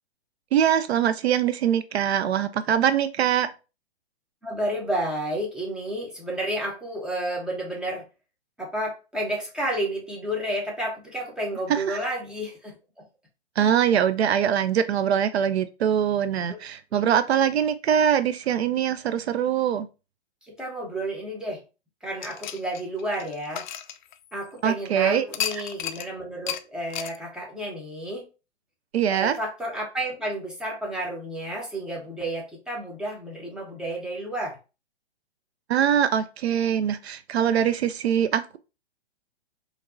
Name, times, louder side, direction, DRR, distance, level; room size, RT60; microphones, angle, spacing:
voice 1, 0.5-3.5 11.7-12.0 13.6-19.9 24.6-25.3 28.9-29.4 35.7-38.6, right 9 dB, 70° right, 0.5 m, -23 dB
voice 2, 4.4-8.0 8.6-12.7 16.9-17.0 20.5-21.6 22.0-23.7 24.3-28.2 29.1-34.6, right 1 dB, ahead, 0.9 m, -31 dB
sound 1, 22.2-24.6 25.3-26.1 26.5-26.6 26.9-27.2, left 9 dB, 45° left, 0.4 m, -33 dB
4.3 x 2.9 x 2.5 m
hypercardioid pair, 130°, 33 cm